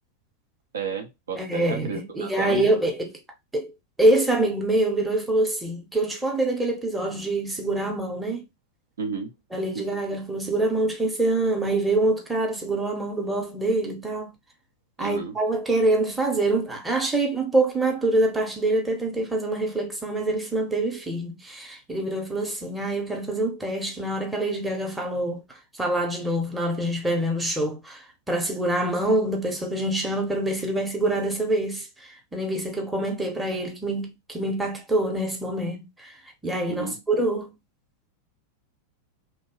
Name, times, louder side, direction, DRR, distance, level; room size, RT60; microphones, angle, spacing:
voice 1, 0.7-2.7 9.0-9.3 9.7-9.8 15.0-15.4 36.7-37.0, right 5 dB, 65° right, 0.6 m, -32 dB
voice 2, 1.4-3.2 3.5-3.7 4.0-8.4 9.5-14.3 15.0-25.4 25.8-28.0 28.3-31.9 32.3-36.1 36.4-37.5, right 2 dB, 5° right, 0.8 m, -25 dB
2.9 x 2.2 x 2.9 m
figure-of-eight pair, 90°, 0 cm